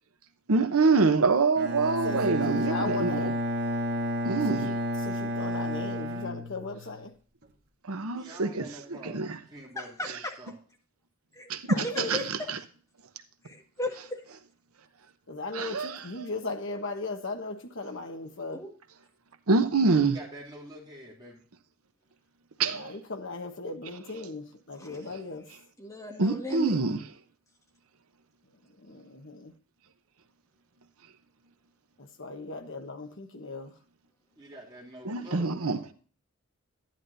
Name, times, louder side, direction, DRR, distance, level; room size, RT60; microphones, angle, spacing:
voice 1, 0.5-3.3 4.2-4.7 7.9-8.6 9.0-9.3 11.5-11.6 12.0-12.2 15.5-16.3 19.5-20.2 22.6-22.9 26.2-27.0 35.1-35.9, right 4 dB, 85° right, 0.9 m, -25 dB
Bowed string instrument, 1.6-7.0, left 1 dB, 50° right, 1.6 m, -31 dB
voice 2, 2.0-3.3 4.5-7.1 11.7-12.2 15.3-18.6 22.6-25.4 28.8-29.5 32.2-33.7, left 3 dB, 60° left, 1.2 m, -37 dB
voice 3, 8.1-10.6 19.8-21.4 34.4-35.9, right 1 dB, 20° right, 3.3 m, -47 dB
voice 4, 9.7-10.3 11.3-12.5 13.4-14.2 18.5-18.7 24.7-25.0 25.8-26.8, left 1 dB, 15° left, 1.6 m, -36 dB
11.0 x 10.5 x 2.7 m
head